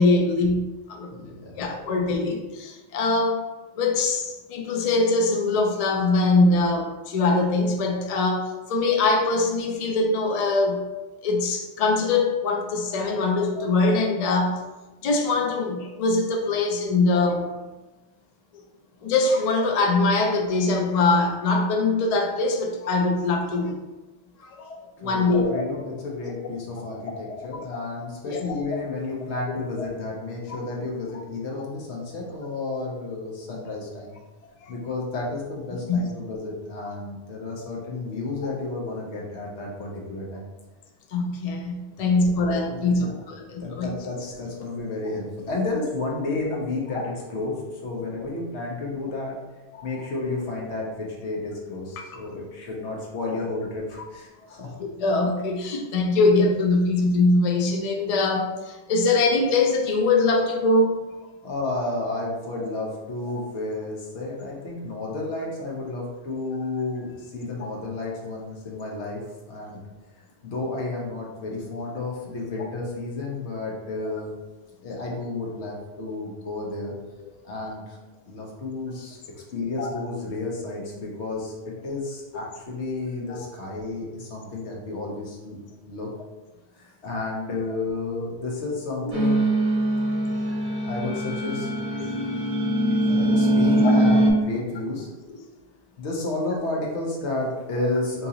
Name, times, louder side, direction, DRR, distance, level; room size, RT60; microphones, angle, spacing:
voice 1, 0.0-1.1 1.6-3.4 3.8-10.9 11.2-14.6 15.0-17.5 19.0-23.7 24.4-25.6 27.3-27.7 28.2-28.5 34.6-34.7 35.9-36.0 41.1-43.9 46.9-47.0 49.7-49.9 54.8-61.0 74.0-74.1 79.8-79.9 87.7-87.8 92.0-92.1 93.8-93.9, left 3 dB, 50° left, 2 dB, 0.5 m, -23 dB
voice 2, 1.1-1.5 25.0-34.1 34.7-40.5 42.0-42.4 42.7-43.2 43.6-49.4 49.8-54.8 61.4-69.8 70.4-74.3 74.8-76.9 77.4-78.0 78.3-79.2 79.5-85.6 85.8-86.1 86.7-89.5 90.8-91.7 93.0-95.1 96.0-98.3, left 2 dB, 85° left, -2 dB, 1.2 m, -31 dB
sound 1, 89.1-94.3, right 1 dB, 50° right, 0.8 m, -22 dB
2.9 x 2.8 x 3.7 m, 1.1 s
omnidirectional pair, 1.1 m